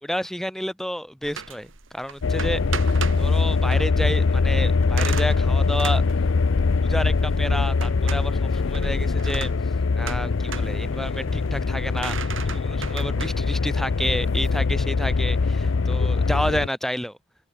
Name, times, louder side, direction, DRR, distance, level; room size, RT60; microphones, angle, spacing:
voice 1, 0.0-2.6 3.2-6.0 6.8-9.5 10.0-12.2 12.5-17.2, equal, ahead, 3.7 m, -30 dB
sound 1, 1.2-15.7, right 6 dB, 90° right, 2.4 m, -38 dB
sound 2, 2.2-16.7, left 4 dB, 85° left, 0.6 m, -22 dB
head